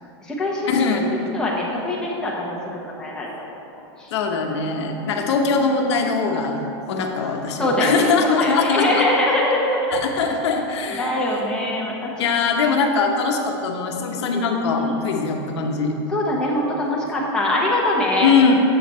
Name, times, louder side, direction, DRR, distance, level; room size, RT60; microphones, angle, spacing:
voice 1, 0.0-0.7 1.1-2.6 3.0-3.3 4.0-4.1 6.9-7.1 7.6-7.9 8.2-10.0 11.0-12.4 14.3-14.4 14.8-14.9 16.1-18.3, left 1 dB, 5° left, -5 dB, 1.0 m, -23 dB
voice 2, 0.7-1.1 4.1-6.6 6.9-9.0 9.9-11.1 12.2-15.9 18.2-18.6, left 4 dB, 80° left, 2 dB, 0.8 m, -21 dB
7.6 x 5.8 x 4.3 m, 2.9 s
supercardioid pair, 155°, 14 cm